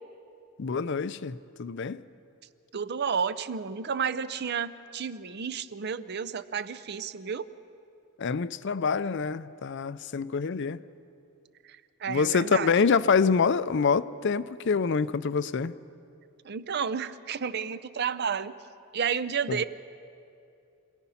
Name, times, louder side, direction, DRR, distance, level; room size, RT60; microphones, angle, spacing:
voice 1, 0.6-2.0 8.2-10.8 12.1-15.7 19.5-19.6, left 5 dB, 55° left, 16 dB, 0.5 m, -26 dB
voice 2, 2.7-7.5 11.6-12.7 16.4-18.5 18.9-19.6, right 6 dB, 50° right, 14 dB, 0.6 m, -31 dB
26.5 x 17.0 x 5.7 m, 2.6 s
head